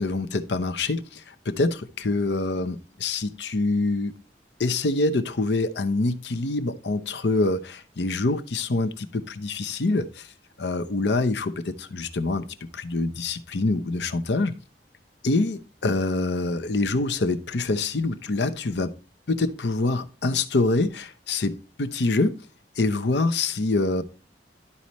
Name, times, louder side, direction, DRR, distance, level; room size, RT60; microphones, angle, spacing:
voice 1, 0.0-4.1 4.6-10.3 10.6-12.4 12.7-14.5 15.2-18.9 19.3-22.4 22.8-24.0, left 2 dB, 75° left, 0.7 m, -25 dB
12.0 x 4.2 x 3.1 m
head